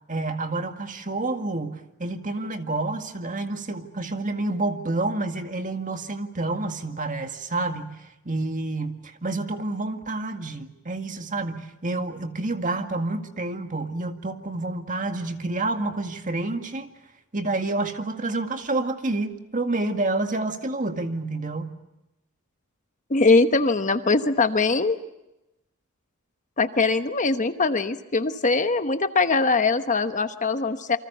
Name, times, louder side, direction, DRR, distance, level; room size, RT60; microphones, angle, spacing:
voice 1, 0.1-16.9 17.3-21.8, right 2 dB, 35° right, 6 dB, 2.0 m, -29 dB
voice 2, 23.1-25.0 26.6-31.0, left 3 dB, 35° left, 9 dB, 1.1 m, -22 dB
28.5 x 25.0 x 6.9 m, 0.92 s
head